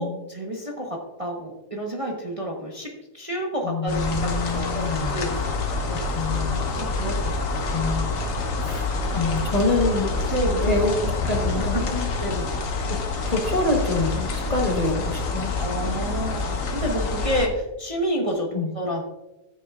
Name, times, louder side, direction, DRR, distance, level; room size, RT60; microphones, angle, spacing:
voice 1, 0.0-5.3 5.9-6.1 6.7-7.6 9.0-9.3 10.2-10.7 11.1-11.3 11.7-12.5 15.6-19.0, equal, 25° right, -1 dB, 1.0 m, -30 dB
voice 2, 3.6-5.4 5.9-6.7 7.7-8.2 8.6-8.9 9.2-10.3 10.7-12.1 12.9-13.0 13.3-15.5 18.5-18.7, left 2 dB, 25° left, 0 dB, 1.1 m, -26 dB
sound 1, 3.9-17.5, left 3 dB, 55° left, 1.4 m, -27 dB
13.5 x 8.1 x 2.4 m, 1.0 s
omnidirectional pair, 1.7 m